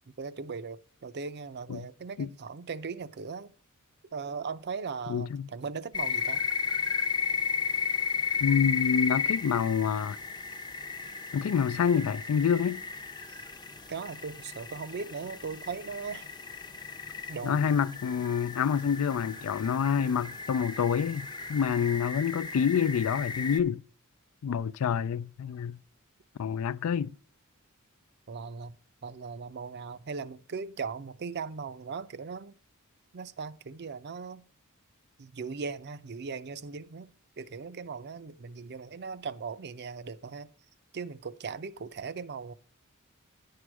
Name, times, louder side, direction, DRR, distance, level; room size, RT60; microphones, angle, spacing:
voice 1, 0.2-3.5 4.1-6.4 13.3-13.4 13.9-16.3 17.3-17.7 28.3-28.8 29.0-32.5 33.1-34.4 35.2-37.1 37.4-40.5 40.9-42.5, right 5 dB, 50° right, 0.5 m, -38 dB
voice 2, 5.1-5.5 8.4-10.2 11.3-12.8 17.4-23.8 24.4-25.8 26.4-27.1, left 7 dB, 70° left, 0.3 m, -27 dB
sound 1, 5.9-23.6, left 6 dB, 20° left, 0.6 m, -34 dB
10.0 x 4.8 x 6.0 m
head